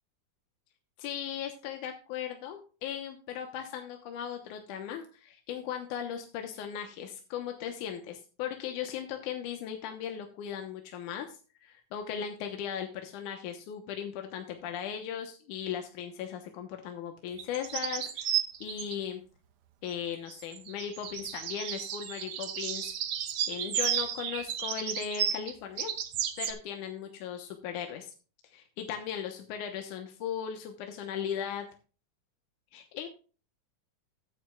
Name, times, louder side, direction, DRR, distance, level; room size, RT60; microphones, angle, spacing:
voice 1, 1.0-19.2 19.8-22.9 23.5-25.9 26.4-28.1 28.5-31.7 32.7-33.1, left 8 dB, 85° left, 4 dB, 2.6 m, -37 dB
sound 1, 17.4-19.0 20.3-26.5, right 9 dB, 65° right, 1.5 m, -33 dB
14.0 x 9.2 x 2.3 m, 0.36 s
omnidirectional pair, 3.5 m